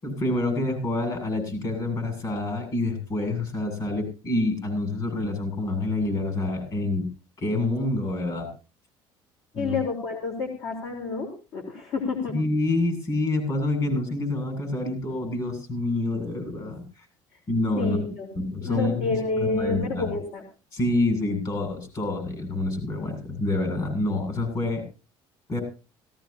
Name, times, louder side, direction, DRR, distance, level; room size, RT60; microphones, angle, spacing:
voice 1, 0.0-7.1 7.4-8.5 9.5-9.8 12.3-17.1 17.5-18.0 18.3-20.1 20.7-24.8 25.5-25.6, left 2 dB, 40° left, 6 dB, 7.6 m, -27 dB
voice 2, 9.5-12.3 17.8-18.3 18.6-20.4, left 3 dB, 60° left, 2 dB, 3.8 m, -29 dB
17.5 x 17.0 x 2.9 m, 0.33 s
cardioid pair, 125°, 10 cm